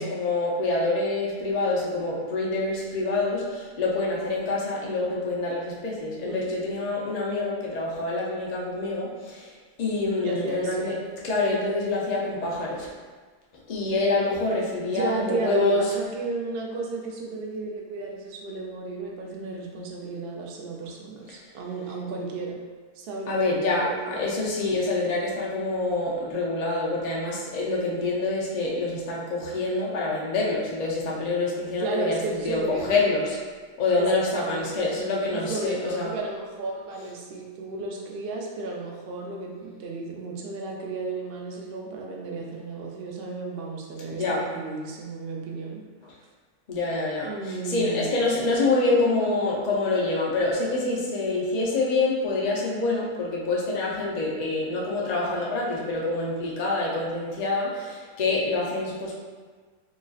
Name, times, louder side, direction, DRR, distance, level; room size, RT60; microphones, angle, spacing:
voice 1, 0.0-9.5 9.8-11.0 11.2-12.9 13.7-15.8 23.3-33.4 33.8-36.1 44.1-44.5 46.7-59.1, left 2 dB, 75° left, -4 dB, 0.3 m, -26 dB
voice 2, 6.2-6.6 10.2-10.9 14.8-22.6 23.0-24.2 31.8-33.1 33.9-34.9 35.3-45.8 47.3-48.5, right 3 dB, 85° right, -1 dB, 0.5 m, -33 dB
3.9 x 3.0 x 2.4 m, 1.4 s
omnidirectional pair, 1.7 m